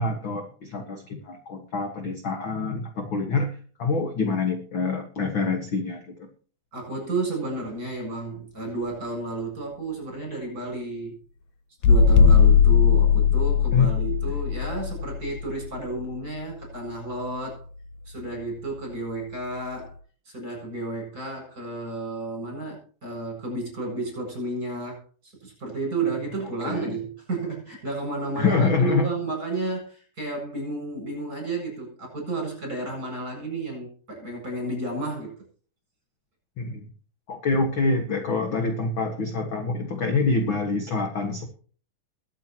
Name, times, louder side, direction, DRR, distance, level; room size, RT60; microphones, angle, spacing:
voice 1, 0.0-3.5 3.8-6.3 13.7-13.9 26.6-27.0 28.4-29.1 36.6-36.9 37.3-41.4, left 3 dB, 50° left, 4 dB, 1.6 m, -26 dB
voice 2, 6.7-11.1 11.8-17.6 18.0-20.0 20.2-35.4, right 2 dB, 25° right, 1 dB, 8.1 m, -32 dB
sound 1, 11.8-16.4 18.2-18.3, left 6 dB, 80° left, 1.6 m, -18 dB
22.0 x 8.5 x 2.9 m, 0.42 s
omnidirectional pair, 4.3 m